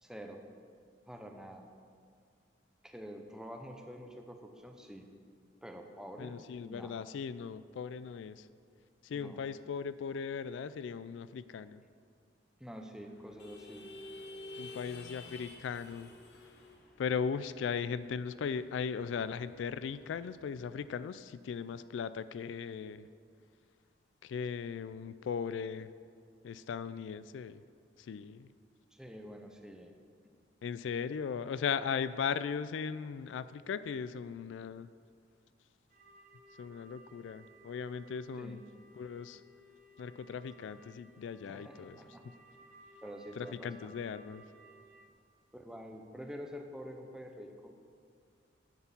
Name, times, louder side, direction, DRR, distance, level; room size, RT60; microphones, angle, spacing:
voice 1, 0.0-0.4 1.1-1.6 2.8-5.1 5.6-6.4 6.6-7.0 9.1-9.4 12.6-14.0 28.9-29.9 38.4-38.6 41.5-42.2 43.0-43.9 45.5-47.8, equal, 5° right, 3 dB, 0.7 m, -47 dB
voice 2, 6.2-8.5 9.0-11.8 14.6-16.1 17.0-23.1 24.2-25.9 26.4-27.6 28.0-28.5 30.6-34.9 36.6-38.6 38.9-39.4 40.0-42.0 43.3-44.4, left 6 dB, 85° left, 14 dB, 0.3 m, -38 dB
sound 1, 13.0-20.8, left 2 dB, 65° left, 0.9 m, -52 dB
sound 2, 35.9-45.1, right 1 dB, 45° right, 0.8 m, -59 dB
10.5 x 4.5 x 7.1 m, 2.2 s
head